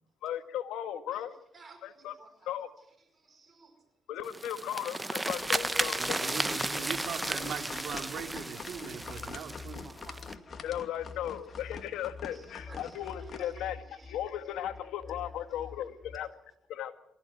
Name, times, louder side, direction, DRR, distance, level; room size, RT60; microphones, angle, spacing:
voice 1, 0.2-1.3 1.8-2.1 2.5-2.7 4.1-6.3 10.6-13.8 14.1-16.3 16.7-16.9, left 11 dB, 85° left, 9 dB, 1.9 m, -36 dB
voice 2, 1.1-3.9 5.7-6.1 8.9-10.6 11.6-11.8 12.3-14.5, right 3 dB, 40° right, 6 dB, 5.4 m, -57 dB
sound 1, 4.2-10.3, right 2 dB, 15° right, 1.1 m, -34 dB
sound 2, 5.3-13.4, left 5 dB, 50° left, 2.6 m, -45 dB
voice 3, 6.0-9.9, right 6 dB, 65° right, 4 dB, 4.2 m, -40 dB
sound 3, 8.8-16.2, left 4 dB, 15° left, 2.2 m, -48 dB
23.5 x 15.0 x 9.4 m, 0.79 s
cardioid pair, 80°, 0 cm